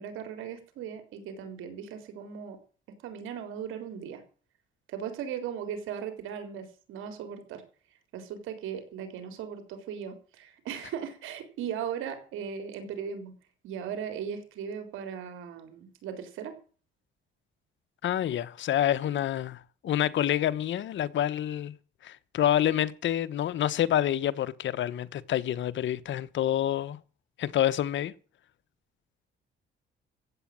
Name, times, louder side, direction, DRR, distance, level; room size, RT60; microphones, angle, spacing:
voice 1, 0.0-2.6 3.0-4.2 4.9-7.6 8.1-13.3 13.6-16.6, right 8 dB, 90° right, 3.9 m, -38 dB
voice 2, 18.0-21.7 22.0-27.0 27.4-28.1, left 11 dB, 70° left, 1.1 m, -27 dB
15.5 x 8.4 x 7.6 m
cardioid pair, 90°, 20 cm